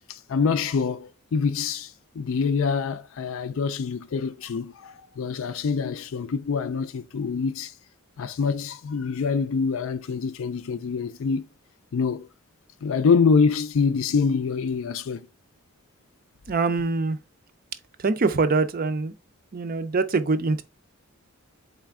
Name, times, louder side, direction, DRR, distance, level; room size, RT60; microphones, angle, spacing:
voice 1, 0.1-7.7 8.2-11.5 11.9-12.3 12.8-15.3, left 5 dB, 60° left, 0.4 m, -25 dB
voice 2, 16.5-17.2 18.0-19.1 19.5-20.6, right 3 dB, 40° right, 0.5 m, -24 dB
4.2 x 3.3 x 3.5 m
head